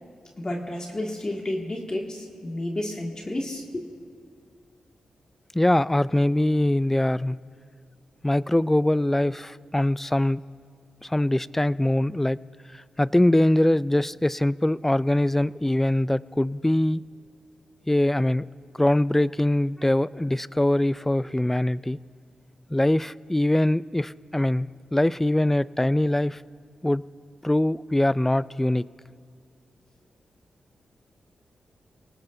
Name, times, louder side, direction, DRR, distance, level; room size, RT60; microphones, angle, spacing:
voice 1, 0.4-3.8, left 1 dB, 30° left, -1 dB, 2.1 m, -31 dB
voice 2, 5.5-7.4 8.2-10.4 11.0-12.4 12.7-17.0 17.9-18.5 18.8-22.0 22.7-26.4 26.8-27.0 27.4-28.8, left 1 dB, 10° left, 18 dB, 0.3 m, -23 dB
28.5 x 18.5 x 2.7 m, 2.2 s
cardioid pair, 55°, 2 cm